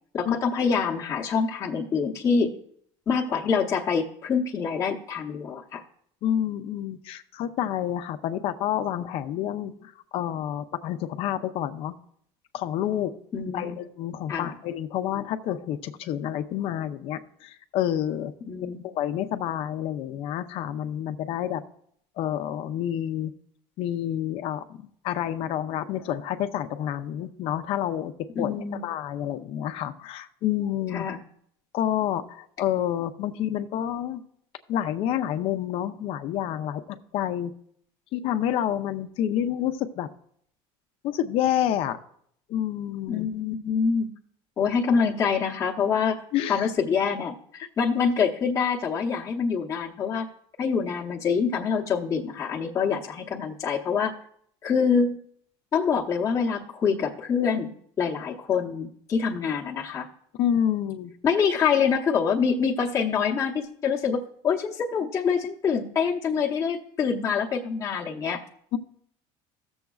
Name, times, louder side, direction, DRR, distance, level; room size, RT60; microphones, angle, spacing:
voice 1, 0.1-2.5 3.1-5.8 13.3-13.8 14.3-14.6 18.5-18.8 28.3-28.8 30.9-31.2 43.1-44.1 44.6-46.2 46.5-50.3 50.6-54.1 54.6-55.2 55.7-57.7 58.0-60.1 61.2-68.4, left 6 dB, 25° left, -3 dB, 0.8 m, -25 dB
voice 2, 6.2-11.9 12.5-13.1 13.5-18.3 18.8-21.6 22.2-23.3 23.8-28.1 28.4-28.5 28.8-31.1 31.7-34.2 34.7-37.5 38.1-40.1 41.0-42.0 42.5-43.3 46.3-46.7 60.4-61.1 68.7-68.8, left 11 dB, 55° left, 9 dB, 0.6 m, -28 dB
15.0 x 7.0 x 2.3 m, 0.65 s
cardioid pair, 145°, 12 cm